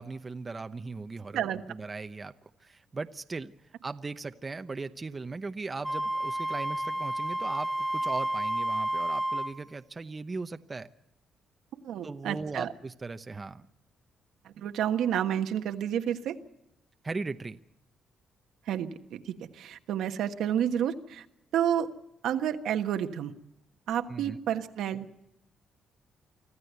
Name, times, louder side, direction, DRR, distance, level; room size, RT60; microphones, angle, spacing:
voice 1, 0.0-3.5 3.8-10.9 12.0-13.7 17.0-17.6 24.1-24.4, right 3 dB, 30° right, 9 dB, 0.9 m, -38 dB
Wind instrument woodwind instrument, 5.8-9.6, right 1 dB, 5° right, 1.1 m, -30 dB
voice 2, 11.7-12.7 14.4-16.3 18.7-21.2 21.5-21.9 22.2-23.3 23.9-25.2, right 10 dB, 80° right, 7 dB, 1.4 m, -30 dB
25.5 x 14.0 x 8.2 m, 0.86 s
cardioid pair, 90°, 0 cm